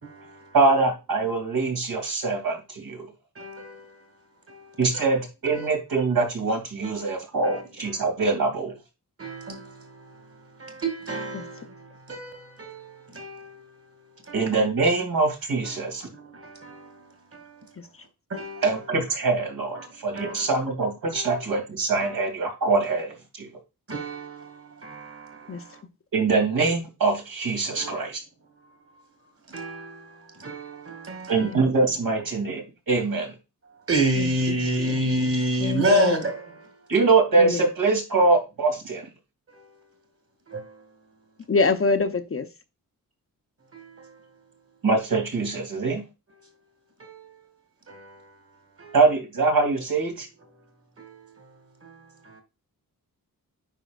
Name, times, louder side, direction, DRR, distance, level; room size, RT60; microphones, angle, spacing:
voice 1, 0.0-0.6 3.4-4.1 4.5-5.2 5.5-5.7 6.8-7.1 7.3-8.0 9.2-14.6 15.6-17.7 18.3-18.9 19.7-20.7 21.1-21.5 22.0-22.2 23.9-25.8 27.7-28.1 29.5-31.6 33.0-33.1 33.9-36.8 39.5-39.8 40.5-40.9 43.7-44.3 46.4-46.5 47.0-47.5 47.9-48.4 48.8-49.0 51.0-51.5 51.8-52.4, right 1 dB, 40° right, 2.2 m, -31 dB
voice 2, 0.5-3.1 4.8-8.7 14.3-16.1 18.6-23.5 26.1-28.2 31.3-33.3 36.9-39.1 44.8-46.0 48.9-50.3, right 3 dB, 75° right, 2.9 m, -23 dB
voice 3, 35.6-36.2 37.4-37.7 41.5-42.5, left 4 dB, 40° left, 0.7 m, -24 dB
9.1 x 5.6 x 2.4 m
wide cardioid pair, 135°, 36 cm